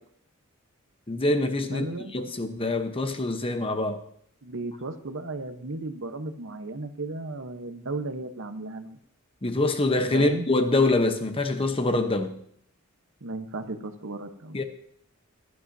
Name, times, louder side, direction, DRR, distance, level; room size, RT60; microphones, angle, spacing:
voice 1, 1.1-1.9 2.1-4.0 9.4-12.4 14.5-14.6, left 2 dB, 25° left, 8 dB, 0.9 m, -25 dB
voice 2, 1.7-2.3 4.4-9.0 10.1-10.5 13.2-14.6, right 2 dB, 65° right, 8 dB, 1.0 m, -35 dB
15.5 x 12.0 x 2.7 m, 0.65 s
head